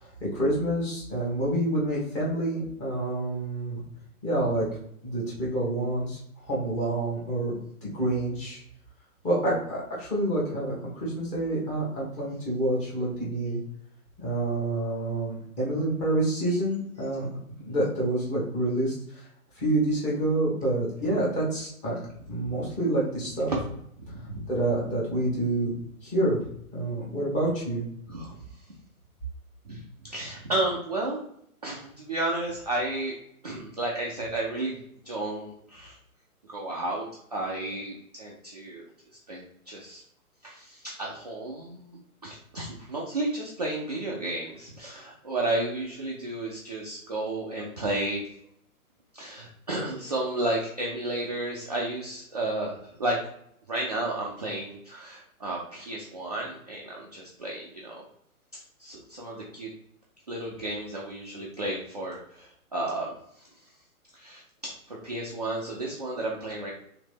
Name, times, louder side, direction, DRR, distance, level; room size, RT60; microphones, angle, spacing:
voice 1, 0.0-3.8 4.2-4.7 5.0-6.2 6.5-8.6 9.2-13.6 14.2-17.3 17.7-19.3 19.5-22.0 22.3-23.5 24.5-25.7 26.0-26.4 26.7-27.8, right 1 dB, 15° left, -6 dB, 1.1 m, -28 dB
voice 2, 24.1-24.5 28.1-28.4 29.6-31.3 31.6-33.1 33.4-34.8 35.0-36.0 36.5-38.8 39.3-40.0 40.4-48.3 49.1-53.2 53.7-58.0 58.8-59.7 60.3-63.5 64.1-66.7, right 2 dB, 30° right, -4 dB, 0.4 m, -32 dB
3.2 x 3.0 x 3.2 m, 0.72 s
figure-of-eight pair, 130°, 44 cm